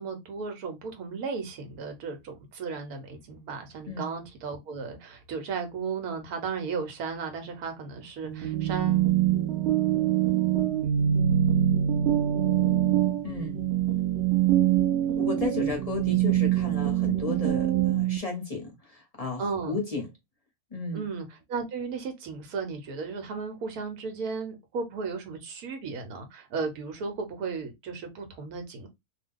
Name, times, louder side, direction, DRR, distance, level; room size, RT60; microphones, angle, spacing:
voice 1, 0.0-9.0 19.4-19.8 20.9-28.9, right 5 dB, 85° right, 1.3 m, -35 dB
sound 1, 8.2-18.2, right 11 dB, 60° right, 0.7 m, -24 dB
voice 2, 13.2-13.6 15.2-20.1 20.7-21.1, left 3 dB, 40° left, 0.5 m, -34 dB
2.7 x 2.3 x 3.5 m
omnidirectional pair, 1.6 m